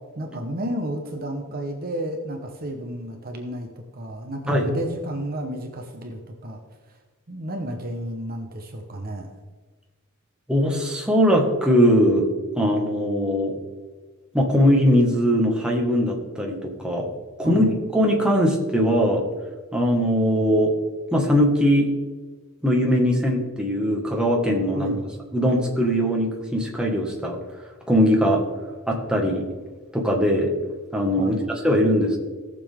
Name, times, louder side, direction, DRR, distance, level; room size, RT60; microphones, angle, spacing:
voice 1, 0.1-6.6 6.9-7.0 7.3-9.3 17.4-17.7 24.7-25.1 31.2-31.6, right 1 dB, 45° right, 3 dB, 1.1 m, -32 dB
voice 2, 10.5-12.3 12.6-13.6 14.3-17.1 17.4-19.2 19.7-20.7 21.1-21.9 22.6-24.9 25.3-27.4 27.9-28.4 28.9-29.4 29.9-30.5 30.9-31.4 31.6-32.2, equal, 5° right, -1 dB, 1.7 m, -20 dB
18.0 x 6.9 x 3.7 m, 1.4 s
head